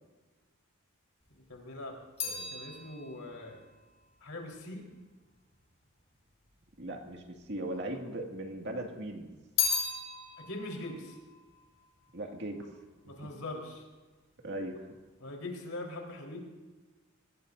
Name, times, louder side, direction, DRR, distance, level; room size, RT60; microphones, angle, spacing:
sound 1, 1.2-5.6 6.4-7.2 7.5-8.7 9.0-12.5 12.8-13.3, left 6 dB, 30° left, 5.7 m, -37 dB
voice 1, 1.3-3.6 4.2-4.9 7.7-7.8 10.4-11.2 13.0-13.9 15.2-16.4, left 1 dB, 80° left, 0 dB, 4.1 m, -42 dB
voice 2, 6.8-9.3 12.1-12.7 13.1-13.3 14.4-14.9, right 1 dB, 55° right, 2 dB, 2.1 m, -38 dB
24.5 x 19.0 x 2.7 m, 1.3 s
head